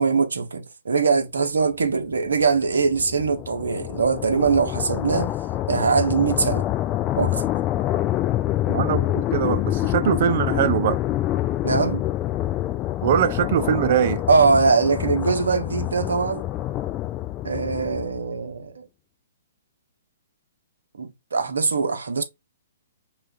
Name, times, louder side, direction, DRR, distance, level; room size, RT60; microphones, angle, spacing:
voice 1, 0.0-5.3 5.7-6.6 7.2-7.4 11.6-12.0 14.3-16.5 17.4-18.8 20.9-22.2, right 4 dB, 75° right, 0.9 m, -22 dB
sound 1, 2.1-18.4, left 14 dB, 25° left, 0.4 m, -26 dB
voice 2, 8.7-11.0 13.0-14.2, right 9 dB, 50° right, 0.4 m, -22 dB
5.5 x 2.4 x 2.3 m
figure-of-eight pair, 125°, 0 cm